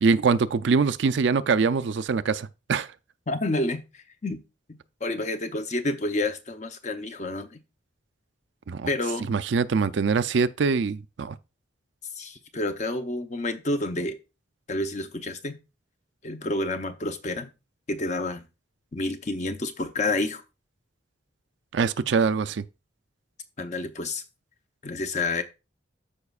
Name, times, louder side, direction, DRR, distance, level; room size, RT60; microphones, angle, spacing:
voice 1, 0.0-2.9 8.7-8.9 9.3-11.3 21.7-22.6, right 5 dB, 70° right, 0.4 m, -23 dB
voice 2, 3.3-4.4 4.7-7.6 8.9-9.3 12.2-14.2 14.7-15.6 16.2-17.5 17.9-18.5 18.9-20.4 23.6-24.2 24.8-25.4, left 2 dB, 40° left, 0.7 m, -29 dB
13.0 x 5.1 x 2.4 m
head